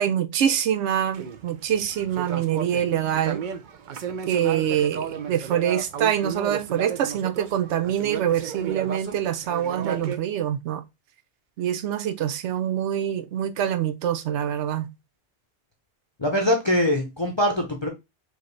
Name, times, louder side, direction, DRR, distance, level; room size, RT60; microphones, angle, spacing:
voice 1, 0.0-3.4 4.3-10.8 11.6-14.9, right 10 dB, 85° right, 0.9 m, -25 dB
sound 1, 1.1-10.2, right 7 dB, 55° right, 0.6 m, -34 dB
voice 2, 16.2-17.9, left 1 dB, 30° left, 0.7 m, -23 dB
4.6 x 3.0 x 3.2 m
omnidirectional pair, 1.1 m